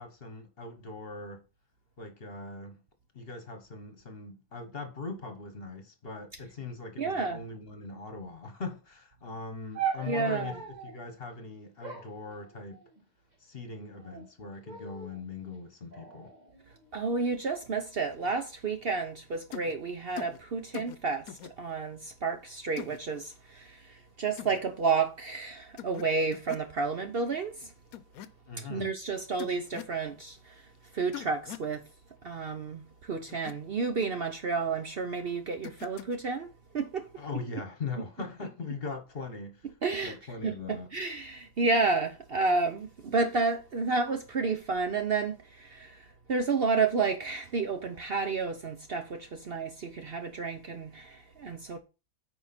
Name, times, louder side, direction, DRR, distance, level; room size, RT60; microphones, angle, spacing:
voice 1, 0.0-1.4 2.0-2.8 3.1-12.8 13.4-16.3 28.5-28.9 37.2-39.7 40.0-40.9, left 4 dB, 45° left, 1.4 m, -40 dB
voice 2, 7.0-7.4 10.1-10.5 16.9-27.7 28.7-30.6 30.9-31.8 32.2-36.5 36.7-37.1 39.8-40.2 40.4-51.8, right 4 dB, 50° right, 0.8 m, -31 dB
sound 1, 9.7-11.0 11.8-13.0 13.8-14.3 14.7-15.2 15.9-17.2 18.0-18.4, right 7 dB, 30° right, 1.9 m, -40 dB
sound 2, 19.5-19.7 20.2-20.4 20.7-21.0 21.3-21.5 22.8-23.0 24.4-24.6 25.8-26.1 26.3-26.7 27.9-28.3 29.4-30.0 31.1-31.7 33.3-33.5 35.6-36.2, left 12 dB, 85° left, 1.1 m, -42 dB
9.2 x 4.9 x 4.3 m
omnidirectional pair, 1.5 m